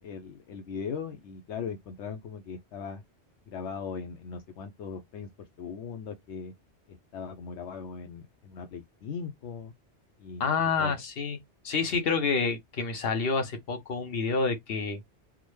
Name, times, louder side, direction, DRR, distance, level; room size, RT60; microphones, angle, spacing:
voice 1, 0.0-3.0 3.5-6.5 6.9-9.7 10.2-10.5 10.8-11.0, left 6 dB, 80° left, 0.9 m, -39 dB
voice 2, 10.4-11.4 11.6-15.0, left 4 dB, 60° left, 1.0 m, -28 dB
3.6 x 2.1 x 3.1 m
omnidirectional pair, 1.2 m